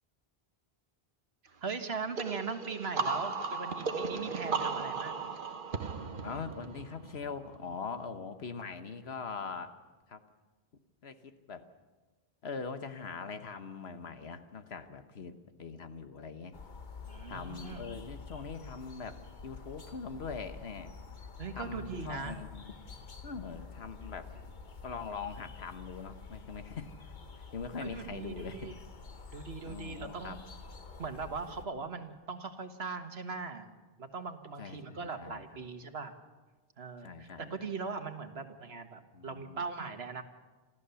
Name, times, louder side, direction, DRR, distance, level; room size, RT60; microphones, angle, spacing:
voice 1, 1.6-5.3 17.0-17.8 21.4-22.4 27.8-28.7 29.3-30.4 31.0-33.7 34.0-36.1 36.8-40.2, right 4 dB, 80° right, 8 dB, 1.7 m, -40 dB
sound 1, 2.2-7.7, right 4 dB, 55° right, 1.2 m, -36 dB
voice 2, 6.2-9.7 10.1-10.2 11.0-11.7 12.4-16.5 17.3-20.9 21.5-22.6 23.2-24.3 24.8-28.7 29.6-30.4 34.6-35.5 37.0-37.5 39.1-39.6, left 5 dB, 80° left, 9 dB, 1.4 m, -42 dB
sound 2, 16.5-31.7, left 5 dB, 50° left, 1.3 m, -48 dB
27.0 x 13.5 x 7.0 m, 1.3 s
omnidirectional pair, 1.0 m